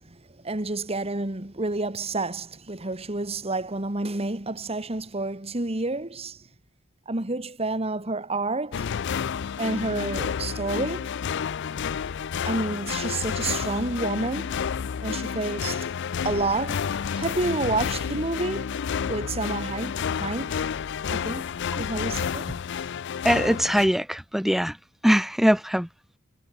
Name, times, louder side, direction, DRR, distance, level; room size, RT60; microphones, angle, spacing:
voice 1, 0.0-6.4 7.1-8.9 9.6-11.1 12.5-14.5 15.0-15.9 16.2-16.9 17.1-18.8 19.1-20.6 21.1-21.4 21.8-22.6, right 2 dB, 30° right, 1.7 m, -29 dB
sound 1, 8.7-23.9, left 7 dB, 60° left, 0.4 m, -30 dB
voice 2, 23.2-24.8 25.0-25.9, equal, ahead, 0.6 m, -22 dB
head